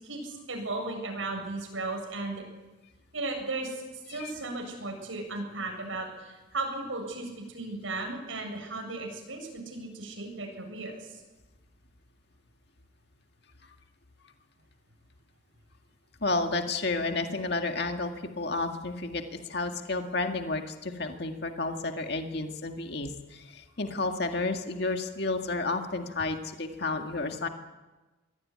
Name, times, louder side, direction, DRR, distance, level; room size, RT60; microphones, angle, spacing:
voice 1, 0.0-2.4 3.1-11.2, right 2 dB, 85° right, 2 dB, 7.9 m, -36 dB
voice 2, 16.2-27.5, left 3 dB, 55° left, 5 dB, 2.0 m, -31 dB
24.0 x 18.5 x 9.7 m, 1.2 s
head